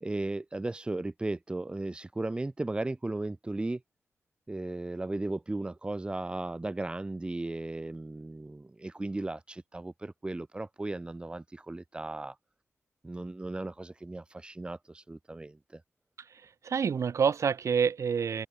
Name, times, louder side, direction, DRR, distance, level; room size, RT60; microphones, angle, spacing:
voice 1, 0.0-3.8 4.5-12.4 13.0-15.8, right 2 dB, 20° right, 1.9 m, -36 dB
voice 2, 16.3-18.5, right 6 dB, 70° right, 5.3 m, -28 dB
open air
wide cardioid pair, 125°, 5 cm